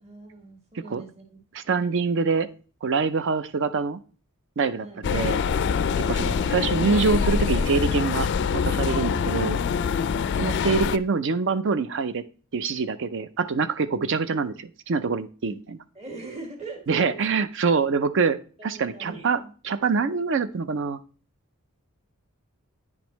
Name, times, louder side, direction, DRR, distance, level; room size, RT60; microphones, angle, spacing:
voice 1, 0.0-1.4 1.6-1.8 4.8-5.0 14.0-14.1 15.4-15.6 15.9-17.2 17.7-17.8 18.6-19.5, right 3 dB, 30° right, 1 dB, 1.6 m, -41 dB
voice 2, 1.5-2.5 2.8-4.0 4.6-5.4 6.0-8.3 8.5-9.6 10.4-12.2 12.5-15.8 16.9-18.4 18.6-19.4 19.6-21.0, right 5 dB, 60° right, 13 dB, 0.5 m, -25 dB
sound 1, 5.0-11.0, left 6 dB, 55° left, 0.3 m, -24 dB
9.6 x 5.2 x 3.0 m, 0.38 s
head